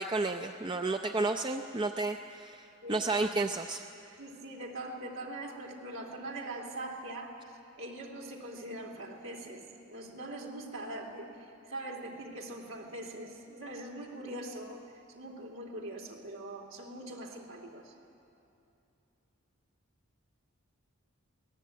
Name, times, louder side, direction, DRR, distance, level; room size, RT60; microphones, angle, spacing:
voice 1, 0.0-3.8, right 3 dB, 20° right, 6 dB, 0.5 m, -32 dB
voice 2, 4.2-7.4 7.8-14.8 15.1-17.9, right 1 dB, 65° right, 0 dB, 3.0 m, -42 dB
23.5 x 18.0 x 8.6 m, 2.7 s
head